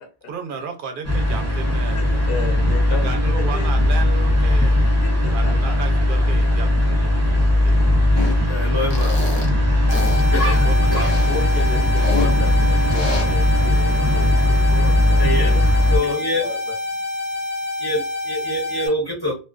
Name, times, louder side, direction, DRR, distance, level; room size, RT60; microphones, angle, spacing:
voice 1, 0.3-2.2 2.9-4.9 5.3-8.0 10.4-11.1, right 5 dB, 60° right, 0.6 m, -34 dB
sound 1, 1.0-16.0, left 1 dB, 20° right, 0.5 m, -18 dB
voice 2, 1.9-3.7 5.0-5.8 7.4-7.5 9.9-10.1 11.3-16.8, left 4 dB, 60° left, 0.9 m, -34 dB
sound 2, 8.1-8.4 8.9-9.5 9.9-10.2 10.9-12.3 12.9-13.2, left 3 dB, 40° left, 0.4 m, -28 dB
voice 3, 8.5-9.2 10.3-11.1 15.2-15.6 15.9-16.4 17.8-19.4, left 1 dB, 25° left, 0.8 m, -25 dB
sound 3, 9.9-18.9, left 2 dB, 80° left, 1.1 m, -27 dB
2.3 x 2.2 x 2.3 m
omnidirectional pair, 1.2 m